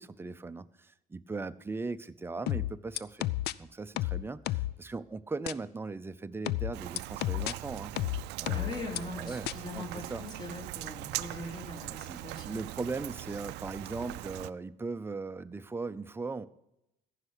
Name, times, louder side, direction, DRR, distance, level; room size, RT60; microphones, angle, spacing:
voice 1, 0.0-3.3 3.6-7.9 8.4-8.7 9.1-9.5 9.7-9.8 10.1-10.2 12.1-16.5, right 3 dB, 15° right, 11 dB, 0.6 m, -38 dB
sound 1, 2.5-3.5 4.0-4.8 5.5-5.6 6.5-7.5 8.0-9.0 9.5-9.6, left 15 dB, 75° left, 0.5 m, -31 dB
Rain, 6.7-14.5, right 19 dB, 90° right, 0.4 m, -41 dB
voice 2, 8.5-12.6, left 2 dB, 25° left, 1 dB, 3.7 m, -41 dB
14.5 x 5.8 x 8.1 m, 0.86 s
cardioid pair, 110°, 17 cm